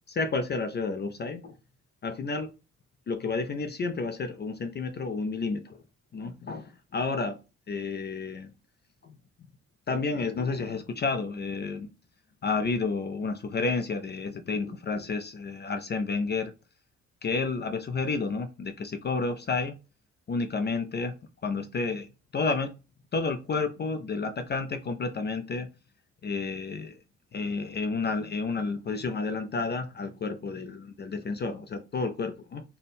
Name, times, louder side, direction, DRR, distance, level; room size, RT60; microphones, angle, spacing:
voice 1, 0.1-1.5 2.0-2.5 3.1-5.8 6.1-7.4 7.7-8.5 9.0-9.2 9.9-11.9 12.4-16.5 17.2-19.8 20.3-21.2 21.4-22.7 23.1-25.7 26.2-27.0 27.3-32.6, left 4 dB, 35° left, 0.5 m, -31 dB
3.5 x 2.2 x 4.1 m
cardioid pair, 90°, 30 cm